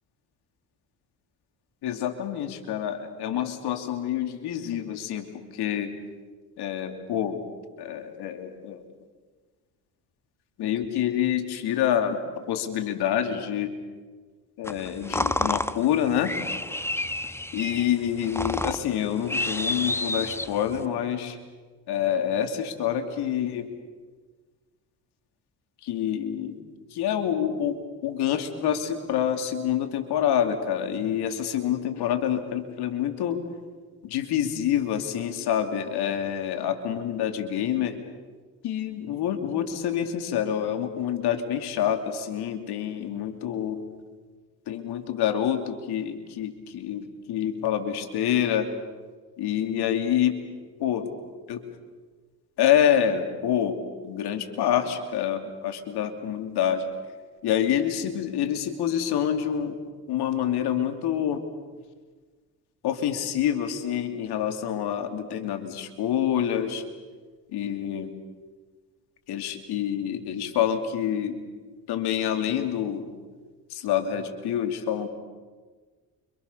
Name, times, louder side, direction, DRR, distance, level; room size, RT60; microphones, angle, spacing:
voice 1, 1.8-5.9 6.6-7.4 7.8-8.8 10.6-13.7 14.6-16.3 17.5-21.4 21.9-23.7 25.8-26.6 26.9-33.4 34.0-38.0 38.6-43.8 44.7-48.7 49.4-50.4 50.8-51.1 51.5-51.6 52.6-53.8 54.0-56.8 57.4-59.8 60.1-61.5 62.8-66.8 67.5-68.1 69.3-71.4 71.9-73.1 73.7-75.1, left 9 dB, 85° left, 6 dB, 3.0 m, -27 dB
sound 1, 14.6-20.9, left 1 dB, 5° left, 1.4 m, -30 dB
29.5 x 25.5 x 6.9 m, 1.5 s
supercardioid pair, 70°, 38 cm